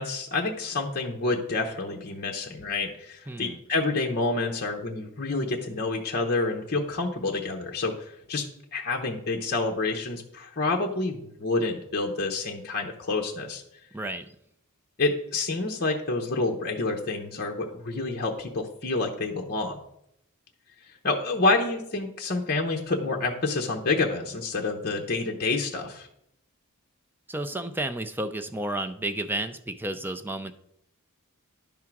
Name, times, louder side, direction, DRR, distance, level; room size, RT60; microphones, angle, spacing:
voice 1, 0.0-8.0 8.3-8.4 8.7-13.6 15.0-19.8 21.0-26.1, left 3 dB, 45° left, 1 dB, 0.8 m, -28 dB
voice 2, 3.3-3.6 13.9-14.3 27.3-30.5, right 1 dB, 10° right, 7 dB, 0.4 m, -32 dB
10.5 x 3.7 x 5.9 m, 0.77 s
head